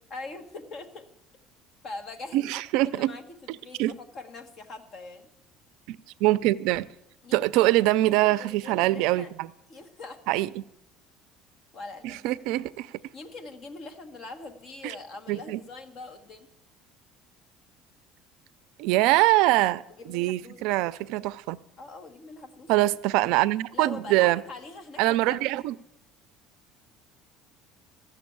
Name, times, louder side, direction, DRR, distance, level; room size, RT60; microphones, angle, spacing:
voice 1, 0.1-1.1 1.8-3.2 3.5-5.3 7.2-9.3 9.7-10.5 11.7-12.4 13.1-16.5 20.0-20.7 21.8-22.7 23.7-25.5, left 3 dB, 40° left, 6 dB, 1.2 m, -43 dB
voice 2, 2.3-3.1 3.8-3.9 5.9-6.9 7.3-9.5 10.3-10.6 12.0-12.9 14.8-14.9 15.3-15.6 18.8-21.6 22.7-24.4 25.0-25.7, right 17 dB, 70° right, 17 dB, 0.4 m, -24 dB
14.0 x 6.7 x 8.5 m, 0.83 s
cardioid pair, 165°, 0 cm